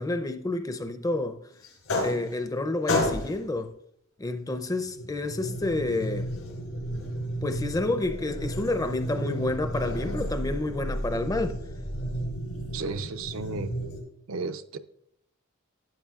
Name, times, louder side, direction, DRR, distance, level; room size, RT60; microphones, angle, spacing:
voice 1, 0.0-1.4 2.0-3.7 4.2-6.3 7.4-11.6, left 2 dB, 15° left, 0.5 m, -29 dB
sound 1, 1.6-2.6 2.9-3.5 4.6-14.0, equal, 85° left, 3.8 m, -32 dB
voice 2, 12.7-13.7 14.3-14.8, right 3 dB, 70° right, 0.5 m, -33 dB
12.5 x 9.4 x 2.4 m
head